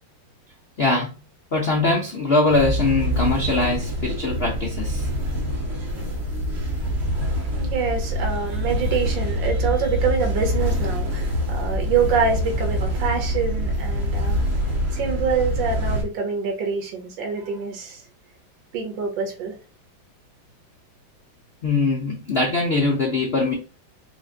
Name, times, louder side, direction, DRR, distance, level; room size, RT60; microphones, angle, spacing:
voice 1, 0.8-1.2 1.5-5.1 21.6-23.5, left 3 dB, 85° left, 0.5 m, -22 dB
sound 1, 2.5-16.0, equal, 35° right, 1.4 m, -25 dB
voice 2, 7.5-14.4 14.9-18.0 18.7-19.6, right 6 dB, 65° right, 1.8 m, -25 dB
4.9 x 2.1 x 3.7 m
omnidirectional pair, 2.2 m